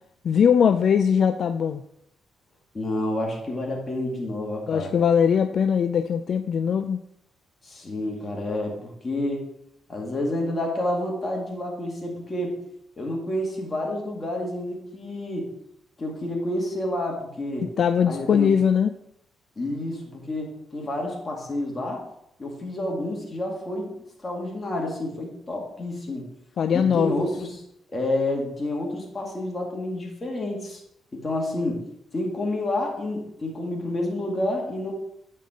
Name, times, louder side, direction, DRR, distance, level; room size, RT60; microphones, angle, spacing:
voice 1, 0.2-1.8 4.7-7.0 17.8-18.9 26.6-27.3, left 7 dB, 60° left, 8 dB, 0.3 m, -21 dB
voice 2, 2.7-4.9 7.6-9.5 9.9-12.6 13.0-15.5 16.0-17.7 18.1-18.5 19.6-22.0 22.4-23.9 24.2-26.3 26.7-27.6 27.9-30.8 31.1-31.8 32.1-34.9, left 1 dB, 25° left, -1 dB, 2.1 m, -29 dB
8.6 x 5.4 x 3.8 m, 0.76 s
cardioid pair, 100°, 0 cm